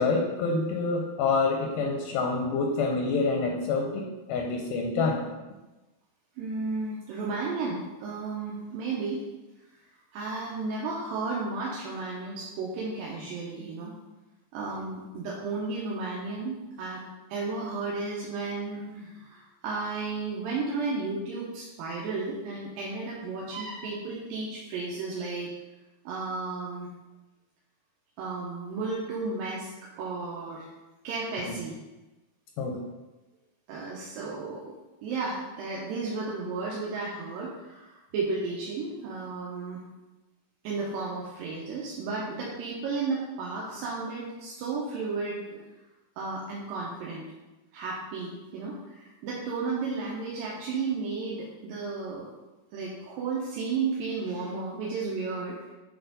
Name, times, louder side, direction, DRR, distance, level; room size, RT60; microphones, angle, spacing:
voice 1, 0.0-4.0 4.3-5.2 31.5-31.6 32.6-32.8, left 4 dB, 80° left, 1 dB, 2.0 m, -27 dB
voice 2, 6.4-9.2 10.1-13.9 14.5-17.0 17.3-25.5 26.1-26.9 28.2-29.7 30.0-30.7 31.0-31.8 33.7-34.8 35.0-39.8 40.6-45.7 46.2-47.3 47.7-52.3 52.7-55.6, right 4 dB, 80° right, -5 dB, 2.5 m, -33 dB
8.2 x 3.6 x 3.9 m, 1.1 s
omnidirectional pair, 4.2 m